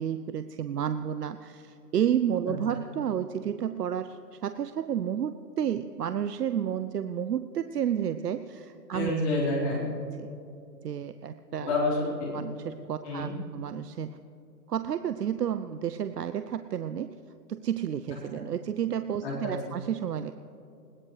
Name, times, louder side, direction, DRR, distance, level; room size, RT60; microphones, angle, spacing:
voice 1, 0.0-9.1 10.2-10.3 10.8-11.7 12.3-14.2 14.7-17.2 17.5-20.3, right 9 dB, 70° right, 11 dB, 0.7 m, -31 dB
voice 2, 8.9-9.9 11.6-12.3 13.0-13.3 18.1-18.4 19.2-19.7, left 2 dB, 25° left, -7 dB, 4.5 m, -29 dB
21.0 x 18.5 x 3.3 m, 2.7 s
hypercardioid pair, 165°, 50 cm